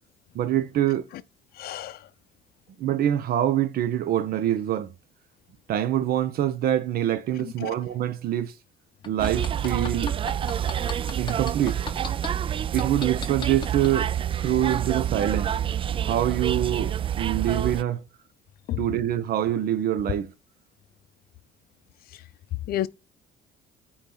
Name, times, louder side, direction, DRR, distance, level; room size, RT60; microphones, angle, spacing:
voice 1, 0.3-1.1 2.8-4.9 5.7-8.5 9.1-10.1 11.2-11.8 12.7-14.1 14.4-15.5 16.0-18.0 18.8-20.3, right 11 dB, 65° right, 1.0 m, -25 dB
voice 2, 1.6-2.0 7.4-7.7 18.7-18.8 22.7-22.9, left 13 dB, 65° left, 0.6 m, -30 dB
sound 1, 9.0-12.3 12.8-13.9 14.4-14.5, left 5 dB, 30° left, 1.4 m, -35 dB
sound 2, 9.2-17.8, right 9 dB, 30° right, 0.3 m, -28 dB
8.7 x 4.7 x 3.9 m
cardioid pair, 110°, 17 cm